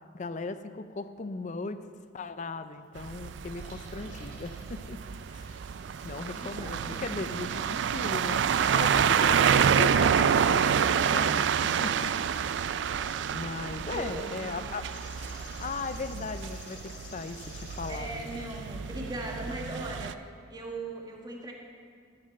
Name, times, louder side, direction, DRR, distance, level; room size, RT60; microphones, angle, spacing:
voice 1, 0.1-1.8 2.1-5.0 5.3-5.6 6.0-8.4 8.7-12.1 13.3-14.8 15.6-16.8 17.1-17.4 17.8-18.4, left 3 dB, 40° left, 11 dB, 0.5 m, -37 dB
Bathtub (filling or washing) / Drip / Trickle dribble, 2.6-19.8, right 1 dB, 45° right, 3.4 m, -53 dB
sound 1, 3.0-20.1, right 7 dB, 70° right, 0.3 m, -28 dB
voice 2, 6.2-7.1 13.8-14.6 17.9-20.2 20.5-21.5, right 2 dB, 20° right, 0 dB, 1.4 m, -39 dB
sound 2, 14.9-20.3, left 6 dB, 65° left, 1.1 m, -52 dB
13.5 x 9.9 x 4.3 m, 2.2 s
head